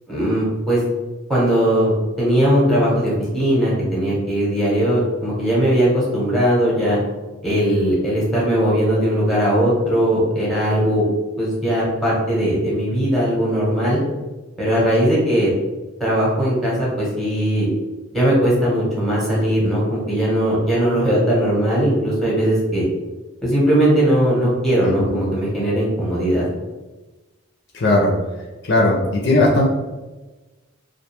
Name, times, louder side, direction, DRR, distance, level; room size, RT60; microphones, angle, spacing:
voice 1, 0.1-0.8 1.3-7.0 7.4-11.0 11.4-14.0 14.6-15.5 16.0-17.7 18.1-22.9 23.4-26.5, equal, ahead, -6 dB, 0.8 m, -19 dB
voice 2, 27.7-28.1 28.6-29.7, left 2 dB, 55° left, -2 dB, 0.4 m, -17 dB
2.4 x 2.2 x 2.8 m, 1.2 s
head